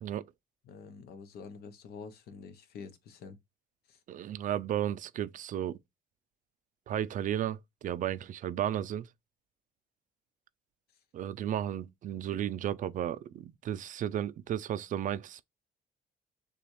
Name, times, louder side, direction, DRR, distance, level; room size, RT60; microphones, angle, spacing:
voice 1, 0.6-3.4 3.9-4.0, left 5 dB, 70° left, 1.0 m, -47 dB
voice 2, 4.1-5.8 6.9-9.1 11.1-15.4, right 11 dB, 50° right, 0.4 m, -34 dB
6.8 x 2.4 x 3.2 m
cardioid pair, 110°, 17 cm